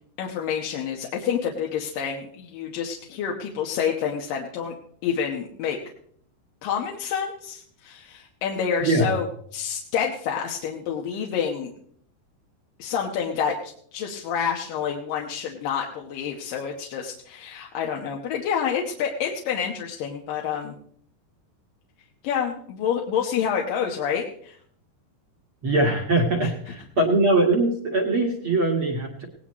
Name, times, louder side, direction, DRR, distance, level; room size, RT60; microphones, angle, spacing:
voice 1, 0.2-4.7 5.0-5.8 6.6-9.3 9.5-11.7 12.8-20.7 22.2-24.6 26.4-26.5, left 7 dB, 65° left, 0 dB, 2.5 m, -28 dB
voice 2, 8.8-9.1 25.6-29.2, right 2 dB, 45° right, 1 dB, 1.8 m, -22 dB
18.5 x 18.5 x 3.1 m, 0.62 s
omnidirectional pair, 4.7 m